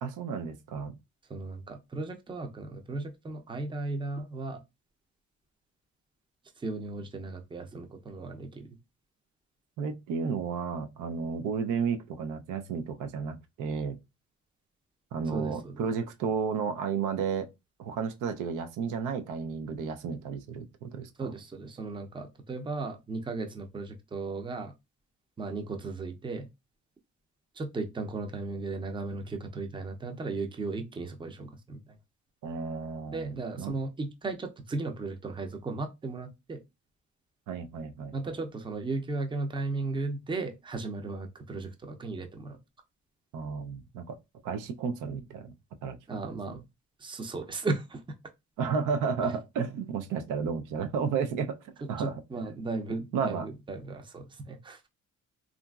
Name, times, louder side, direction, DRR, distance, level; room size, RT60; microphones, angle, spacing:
voice 1, 0.0-0.9 9.8-14.0 15.1-17.5 17.8-21.1 32.4-33.7 37.5-38.1 43.3-44.1 44.4-45.5 45.8-46.0 46.3-46.6 48.6-52.2 53.1-53.5, right 6 dB, 85° right, 0.5 m, -32 dB
voice 2, 1.3-4.6 6.6-8.7 15.3-15.8 21.2-24.7 25.4-26.5 27.6-31.8 33.1-36.6 38.1-42.6 46.1-46.6 47.0-48.0 52.0-54.9, right 3 dB, 15° right, 0.5 m, -36 dB
2.8 x 2.5 x 2.3 m
cardioid pair, 90°, 30 cm